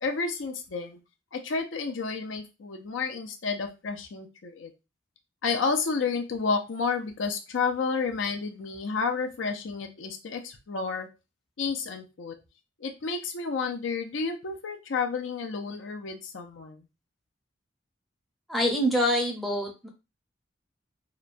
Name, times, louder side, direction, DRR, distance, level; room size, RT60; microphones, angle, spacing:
voice 1, 0.0-1.0 1.3-4.7 5.4-11.1 11.6-12.3 12.8-16.8, left 4 dB, 85° left, 4 dB, 0.5 m, -31 dB
voice 2, 18.5-19.9, equal, ahead, -1 dB, 0.5 m, -25 dB
2.9 x 2.2 x 2.5 m, 0.27 s
head